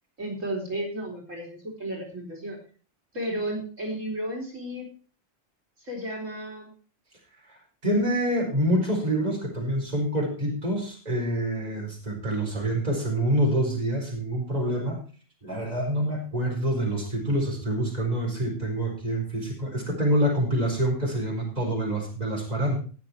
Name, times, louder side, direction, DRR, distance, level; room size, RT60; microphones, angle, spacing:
voice 1, 0.2-2.6 3.1-4.9 5.8-6.7, right 1 dB, 75° right, -2 dB, 4.5 m, -33 dB
voice 2, 7.8-15.0 15.4-22.8, right 1 dB, 30° right, -2 dB, 4.7 m, -26 dB
19.0 x 6.7 x 4.4 m, 0.38 s
omnidirectional pair, 1.3 m